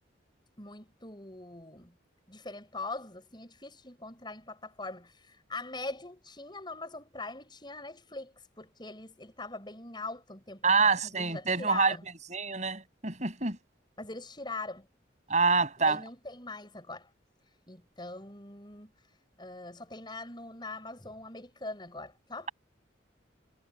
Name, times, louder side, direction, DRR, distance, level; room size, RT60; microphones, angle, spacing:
voice 1, 0.6-1.9 2.3-12.1 14.0-14.9 15.8-17.1 17.7-18.9 19.4-22.5, left 3 dB, 25° left, 6.7 m, -42 dB
voice 2, 10.6-12.0 12.3-13.6 15.3-16.0, right 4 dB, 40° right, 7.8 m, -26 dB
head